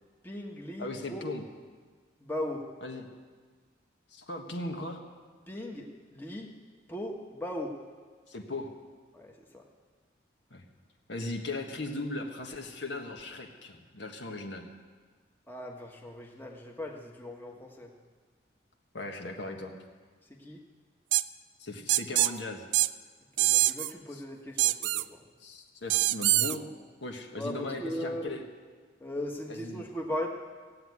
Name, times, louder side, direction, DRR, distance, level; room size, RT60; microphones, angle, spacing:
voice 1, 0.2-1.3 2.2-2.7 5.5-6.5 6.9-7.8 9.1-9.6 15.5-17.9 20.3-20.6 23.4-25.3 27.4-28.3 29.0-30.3, left 1 dB, 10° left, 0 dB, 1.2 m, -38 dB
voice 2, 0.8-1.4 2.8-3.1 4.1-5.0 8.3-8.7 10.5-10.6 11.1-14.6 18.9-19.7 21.6-22.7 24.1-24.2 25.4-26.7 27.0-28.4 29.5-29.8, left 2 dB, 70° left, 2 dB, 1.6 m, -38 dB
sound 1, 21.1-21.2 21.9-22.3 22.7-22.9 23.4-23.9 24.6-25.0 25.9-26.6, right 16 dB, 75° right, 0.3 m, -24 dB
16.5 x 8.1 x 9.5 m, 1.5 s
head